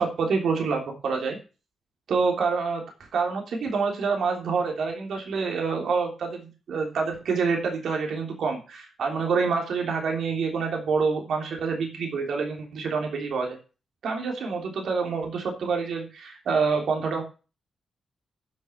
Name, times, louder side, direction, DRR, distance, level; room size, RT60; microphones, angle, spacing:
voice 1, 0.0-1.4 2.1-2.8 3.1-13.6 14.0-17.2, right 5 dB, 75° right, 2 dB, 3.2 m, -27 dB
11.0 x 6.4 x 7.9 m, 0.33 s
cardioid pair, 75°, 0 cm